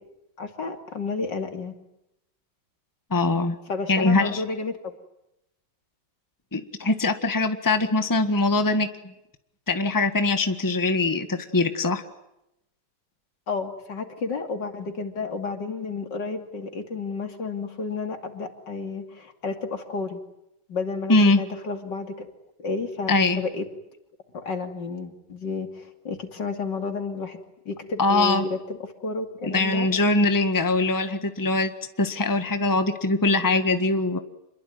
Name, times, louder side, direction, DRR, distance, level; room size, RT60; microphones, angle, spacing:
voice 1, 0.4-1.8 3.7-4.9 13.5-20.2 20.7-22.3 22.6-23.7 24.3-27.4 27.7-28.6 29.0-29.9, left 4 dB, 70° left, 6 dB, 3.3 m, -31 dB
voice 2, 3.1-3.6 3.9-4.4 6.5-9.1 9.7-12.0 21.1-21.4 23.1-23.4 28.0-28.4 29.5-31.7 32.0-34.2, left 2 dB, 10° left, 8 dB, 1.6 m, -22 dB
28.0 x 22.0 x 9.4 m, 0.86 s
omnidirectional pair, 2.0 m